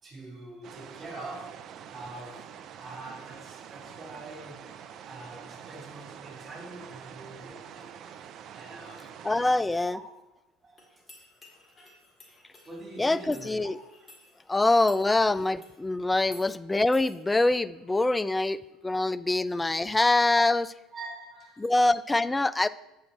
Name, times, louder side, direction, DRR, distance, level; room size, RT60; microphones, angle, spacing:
voice 1, 0.0-4.7 5.1-8.1 8.5-9.1 9.6-10.0 10.6-10.9 12.7-13.7 16.2-16.5 18.4-18.5 18.9-19.4 20.9-21.7, right 2 dB, 30° right, -1 dB, 3.3 m, -45 dB
sound 1, 0.6-9.6, right 8 dB, 50° right, 0.5 m, -46 dB
voice 2, 9.2-10.0 13.0-13.8 14.5-20.7 21.6-22.7, left 2 dB, 15° left, 16 dB, 0.3 m, -24 dB
sound 2, 10.8-15.8 16.2-16.5 16.9-17.2, left 2 dB, 30° left, 2.3 m, -54 dB
8.3 x 6.5 x 4.3 m, 0.98 s
hypercardioid pair, 65°, 0 cm